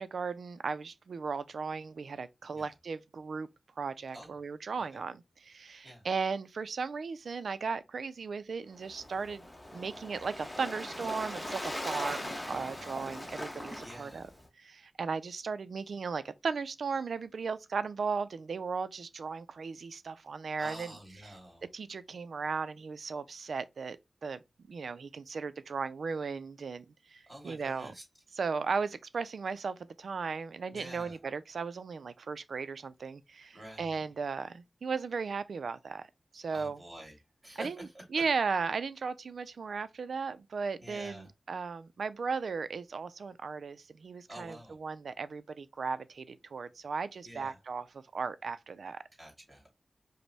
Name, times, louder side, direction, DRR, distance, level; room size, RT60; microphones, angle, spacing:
voice 1, 0.0-3.5 3.8-9.5 9.7-14.2 14.6-20.9 21.6-24.0 24.2-24.4 24.7-27.9 28.4-36.1 36.3-36.8 37.6-37.8 38.1-49.0, right 5 dB, 85° right, 0.3 m, -36 dB
Waves surf, 8.8-14.5, left 1 dB, 15° left, 0.8 m, -40 dB
voice 2, 12.4-13.4 13.8-14.3 20.6-21.7 27.3-28.0 30.7-31.2 33.5-34.1 36.5-38.2 40.8-41.3 44.3-44.8 47.2-47.6 49.2-49.7, equal, 25° right, 2.3 m, -48 dB
5.1 x 2.0 x 3.3 m
wide cardioid pair, 100°, 0 cm